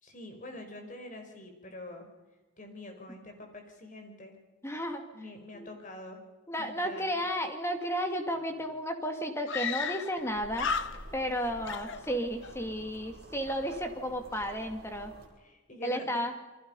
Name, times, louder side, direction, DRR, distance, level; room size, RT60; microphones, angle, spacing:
voice 1, 0.0-2.1 2.6-4.4 5.1-6.2 6.6-7.2 15.4-16.2, left 1 dB, 35° left, 4 dB, 5.0 m, -45 dB
voice 2, 4.6-5.0 5.5-5.7 6.5-10.7 11.1-15.1 15.8-16.3, equal, 10° left, 5 dB, 2.6 m, -33 dB
Screaming, 8.4-8.5 8.7-8.8 9.5-10.3 10.5-11.3 11.6-12.6, left 6 dB, 60° left, 1.0 m, -34 dB
sound 1, 10.2-15.3, right 1 dB, 45° right, 5.8 m, -50 dB
29.0 x 23.5 x 5.7 m, 1.1 s
head